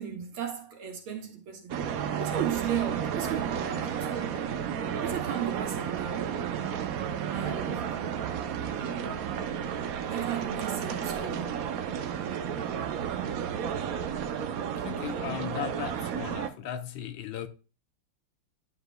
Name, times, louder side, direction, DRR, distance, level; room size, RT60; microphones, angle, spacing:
voice 1, 0.0-1.7 2.2-4.5 5.0-6.4 7.1-7.8 10.1-11.7, right 9 dB, 75° right, 2.5 m, -35 dB
sound 1, 1.7-16.5, right 8 dB, 90° right, 0.7 m, -32 dB
voice 2, 14.8-17.5, left 10 dB, 70° left, 1.3 m, -37 dB
11.0 x 6.8 x 2.2 m
omnidirectional pair, 2.4 m